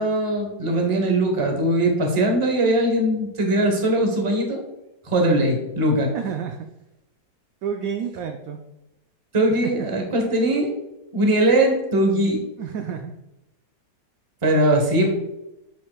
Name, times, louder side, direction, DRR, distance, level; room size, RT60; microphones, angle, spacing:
voice 1, 0.0-4.6 5.0-6.1 9.3-10.7 11.1-12.4 14.4-15.1, right 1 dB, 25° right, 2 dB, 0.8 m, -20 dB
voice 2, 6.1-6.6 7.6-8.6 9.5-9.6 12.6-13.1, right 7 dB, 75° right, 5 dB, 0.8 m, -29 dB
7.2 x 6.5 x 2.3 m, 0.93 s
omnidirectional pair, 2.0 m